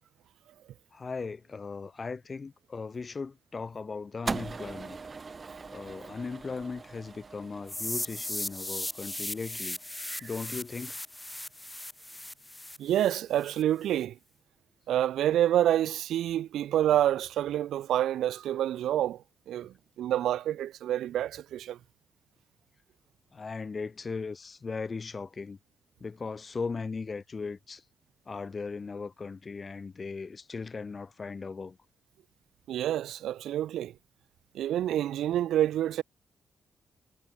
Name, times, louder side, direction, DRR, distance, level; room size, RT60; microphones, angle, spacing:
voice 1, 0.9-5.0 5.7-9.8 10.2-11.0 23.3-25.6 26.0-27.8 28.3-31.8, left 4 dB, 40° left, 1.2 m, -38 dB
sound 1, 4.3-10.6, right 4 dB, 35° right, 0.9 m, -41 dB
sound 2, 7.7-13.6, left 1 dB, 10° left, 1.5 m, -37 dB
voice 2, 12.8-14.2 14.9-19.2 19.5-21.8 32.7-33.9 34.5-36.0, right 12 dB, 90° right, 0.4 m, -28 dB
cardioid pair, 85°, 0 cm